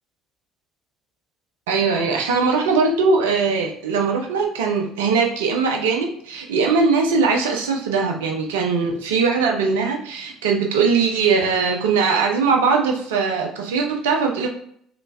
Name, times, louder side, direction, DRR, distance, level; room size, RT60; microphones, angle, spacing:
voice 1, 1.7-14.5, right 5 dB, 70° right, 2 dB, 0.6 m, -20 dB
3.2 x 3.0 x 2.6 m, 0.66 s
figure-of-eight pair, 55°, 0 cm